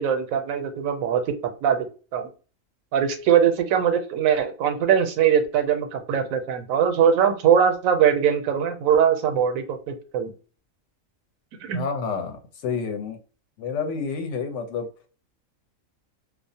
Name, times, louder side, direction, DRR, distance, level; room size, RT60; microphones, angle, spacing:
voice 1, 0.0-1.9 2.1-2.3 2.9-10.3 11.6-11.8, right 8 dB, 85° right, 6 dB, 1.0 m, -21 dB
voice 2, 11.7-13.2 13.6-14.9, left 5 dB, 70° left, 4 dB, 0.8 m, -29 dB
2.3 x 2.0 x 2.6 m, 0.37 s
omnidirectional pair, 1.4 m